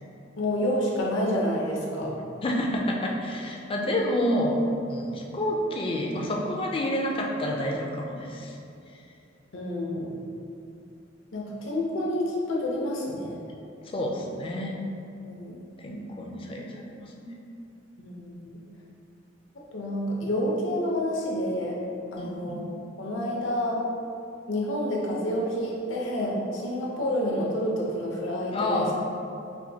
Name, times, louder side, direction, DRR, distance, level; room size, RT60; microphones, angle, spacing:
voice 1, 0.4-2.1 9.5-10.2 11.3-13.4 15.2-15.6 18.0-18.6 19.7-21.8 22.1-23.8 24.5-28.9, left 1 dB, 75° left, -3 dB, 0.7 m, -29 dB
voice 2, 2.4-4.6 4.9-8.6 13.8-14.8 15.8-17.3 22.2-22.7 28.5-28.9, left 1 dB, 30° left, 0 dB, 0.4 m, -29 dB
4.3 x 2.6 x 2.7 m, 2.6 s
head